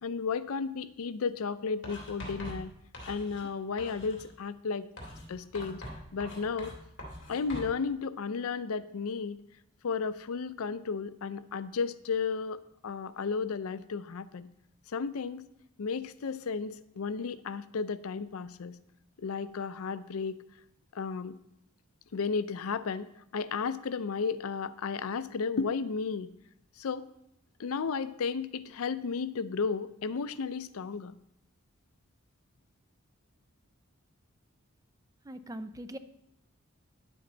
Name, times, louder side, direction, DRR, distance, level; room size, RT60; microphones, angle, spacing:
voice 1, 0.0-2.7 3.1-4.9 5.3-5.8 6.1-6.7 7.3-9.4 9.8-14.5 14.9-15.5 15.8-18.8 19.2-20.4 20.9-21.4 22.1-26.3 26.8-27.1 27.6-31.1, left 5 dB, 80° left, 15 dB, 0.5 m, -33 dB
Writing, 1.8-3.5 3.8-4.3 5.0-7.7, equal, 55° left, 2.4 m, -43 dB
voice 2, 35.3-36.0, right 1 dB, 15° right, 11 dB, 0.4 m, -41 dB
10.0 x 8.7 x 3.9 m, 0.80 s
head